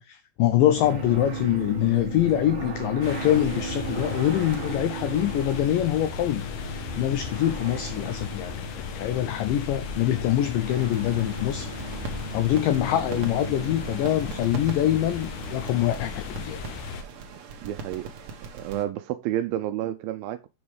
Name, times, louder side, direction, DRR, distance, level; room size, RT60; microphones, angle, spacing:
voice 1, 0.0-8.7 9.0-11.7 12.0-16.6, left 12 dB, 85° left, 1.9 m, -25 dB
sound 1, 0.8-16.5, right 2 dB, 45° right, 1.5 m, -37 dB
sound 2, 3.0-17.0, left 6 dB, 70° left, 2.0 m, -36 dB
sound 3, 10.6-18.9, right 5 dB, 60° right, 1.8 m, -41 dB
voice 2, 17.6-18.1 18.5-20.5, right 12 dB, 80° right, 2.2 m, -30 dB
7.0 x 5.4 x 4.8 m
omnidirectional pair, 4.5 m